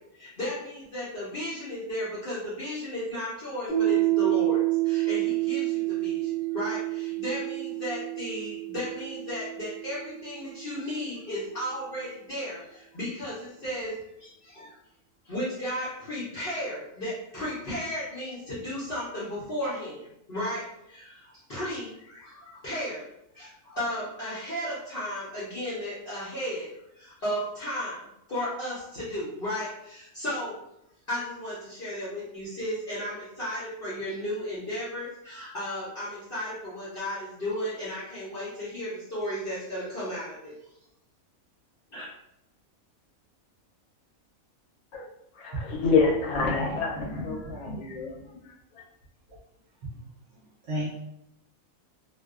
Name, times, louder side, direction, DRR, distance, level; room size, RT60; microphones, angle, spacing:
voice 1, 0.0-14.8 15.2-23.1 23.3-26.7 26.9-30.6 31.1-40.5 41.9-42.1, equal, 50° left, -9 dB, 0.8 m, -34 dB
Piano, 3.7-10.9, right 18 dB, 35° right, 0.9 m, -29 dB
voice 2, 45.4-48.2 48.7-48.8, left 4 dB, 90° left, -1 dB, 1.1 m, -27 dB
voice 3, 46.5-47.8 48.3-48.4 50.7-51.0, equal, 60° right, -6 dB, 0.9 m, -34 dB
2.5 x 2.1 x 2.3 m, 0.80 s
omnidirectional pair, 1.5 m